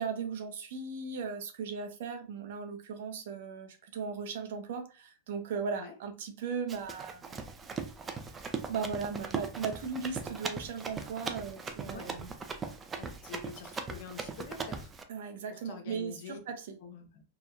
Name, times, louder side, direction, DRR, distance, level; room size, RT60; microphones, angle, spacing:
voice 1, 0.0-7.4 8.7-12.3 15.1-16.8, right 5 dB, 70° right, 5 dB, 0.6 m, -37 dB
Run, 6.7-15.0, right 5 dB, 20° right, 0.3 m, -39 dB
voice 2, 13.0-14.9 15.5-16.4 16.8-17.2, left 5 dB, 60° left, 4 dB, 0.7 m, -46 dB
2.8 x 2.1 x 2.4 m, 0.35 s
supercardioid pair, 135°, 0 cm